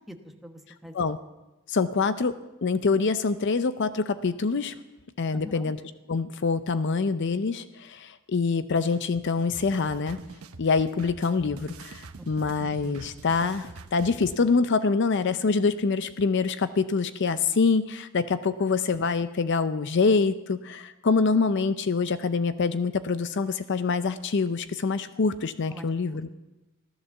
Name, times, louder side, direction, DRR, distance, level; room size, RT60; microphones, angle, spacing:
voice 1, 0.1-0.9 5.3-5.6 12.2-12.3 25.7-26.4, equal, ahead, 4 dB, 1.1 m, -44 dB
voice 2, 1.7-4.7 5.2-5.8 6.1-10.2 10.6-26.3, left 4 dB, 55° left, 12 dB, 0.5 m, -25 dB
sound 1, 8.8-14.4, right 3 dB, 90° right, 1.0 m, -44 dB
15.0 x 13.5 x 7.1 m, 1.1 s
head